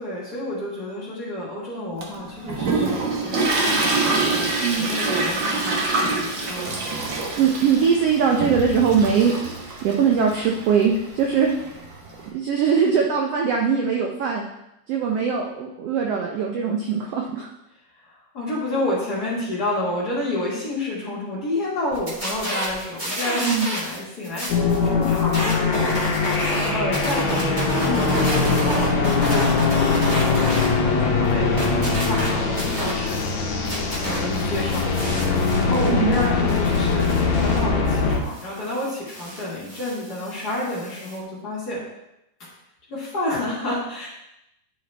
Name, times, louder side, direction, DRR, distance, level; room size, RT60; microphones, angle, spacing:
voice 1, 0.0-6.8 18.0-26.5 26.7-31.5 31.8-33.2 34.0-35.2 35.6-41.8 42.9-44.1, left 1 dB, 35° left, -6 dB, 1.9 m, -30 dB
Toilet flush, 2.0-12.2, right 3 dB, 60° right, 1.3 m, -26 dB
voice 2, 7.2-9.3 9.8-11.5 12.3-14.5 14.9-17.5 23.4-23.7 35.9-36.2, right 6 dB, 85° right, 0 dB, 1.3 m, -21 dB
sound 1, 21.9-24.0 24.2-30.7 31.0-33.3 33.6-41.2, equal, 20° right, 1.7 m, -30 dB
sound 2, 24.5-38.2, left 4 dB, 65° left, 2.1 m, -22 dB
10.0 x 5.3 x 3.3 m, 0.86 s
omnidirectional pair, 3.7 m